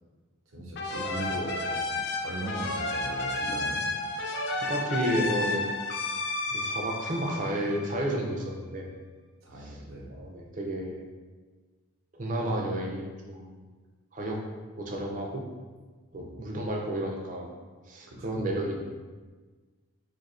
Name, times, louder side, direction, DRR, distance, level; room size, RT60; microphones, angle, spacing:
voice 1, 0.5-3.8 9.4-10.1 16.1-16.3 18.1-18.4, right 1 dB, 90° right, -2 dB, 0.8 m, -38 dB
sound 1, 0.8-8.2, left 2 dB, 55° left, 0.3 m, -32 dB
voice 2, 4.6-5.7 6.5-8.9 9.6-9.8 10.1-11.0 12.1-13.6 14.1-14.4 14.8-15.4 16.1-17.5 17.9-18.8, right 1 dB, 40° right, 0 dB, 0.5 m, -31 dB
2.6 x 2.5 x 4.1 m, 1.4 s
head